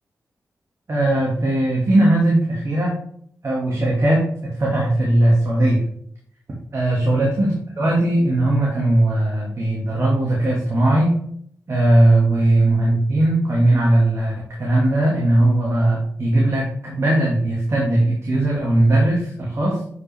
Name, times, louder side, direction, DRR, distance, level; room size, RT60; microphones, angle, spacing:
voice 1, 0.9-3.0 3.4-5.8 6.7-11.1 11.7-19.8, right 1 dB, 50° right, -4 dB, 2.1 m, -18 dB
8.0 x 5.4 x 3.5 m, 0.64 s
cardioid pair, 55°, 6 cm